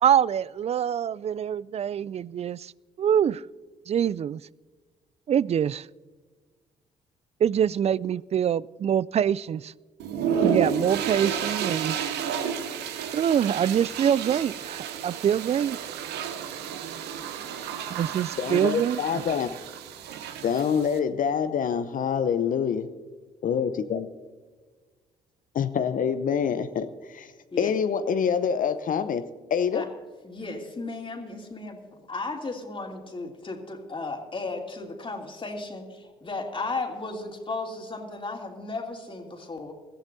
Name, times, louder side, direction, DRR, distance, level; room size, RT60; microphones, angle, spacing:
voice 1, 0.0-2.7 3.0-3.4 3.9-4.4 5.3-5.9 7.4-9.7 10.4-12.0 13.1-15.8 17.9-19.0, right 9 dB, 40° right, 22 dB, 0.4 m, -24 dB
sound 1, 10.0-21.0, right 7 dB, 70° right, 1.0 m, -31 dB
voice 2, 18.4-19.5 20.4-22.9 23.4-24.1 25.5-27.3 27.6-29.9, left 7 dB, 50° left, 11 dB, 0.8 m, -26 dB
voice 3, 30.2-31.8 32.1-39.7, left 3 dB, 30° left, 1 dB, 3.0 m, -35 dB
21.5 x 14.5 x 2.7 m, 1.4 s
hypercardioid pair, 50°, 18 cm